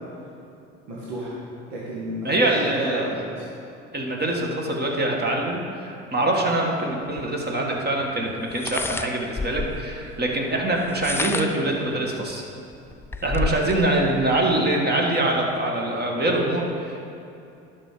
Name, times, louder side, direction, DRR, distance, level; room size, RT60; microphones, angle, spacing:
voice 1, 0.9-1.3 1.7-3.4, right 1 dB, 75° right, -7 dB, 1.9 m, -32 dB
voice 2, 2.2-3.1 3.9-12.4 13.2-17.0, right 1 dB, 25° right, 0 dB, 1.9 m, -24 dB
sound 1, 7.2-7.3 8.5-9.9 10.8-11.7 12.3-12.4 12.7-13.8, left 3 dB, 5° left, 0.4 m, -29 dB
11.0 x 6.1 x 5.2 m, 2.7 s
hypercardioid pair, 65°, 37 cm